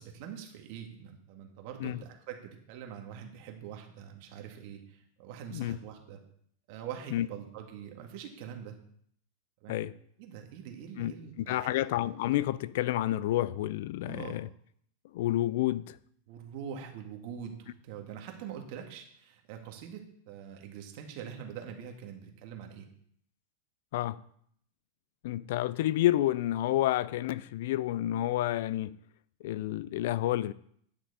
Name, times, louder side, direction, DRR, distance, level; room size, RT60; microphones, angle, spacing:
voice 1, 0.0-6.2 6.7-8.8 9.6-9.8 10.2-11.8 14.0-14.3 16.3-22.9, right 8 dB, 55° right, 1.7 m, -44 dB
voice 2, 11.0-14.5 15.1-16.0 23.9-24.2 25.2-29.0 29.4-30.5, left 14 dB, 65° left, 0.3 m, -29 dB
10.5 x 6.0 x 4.1 m
supercardioid pair, 140°, 0 cm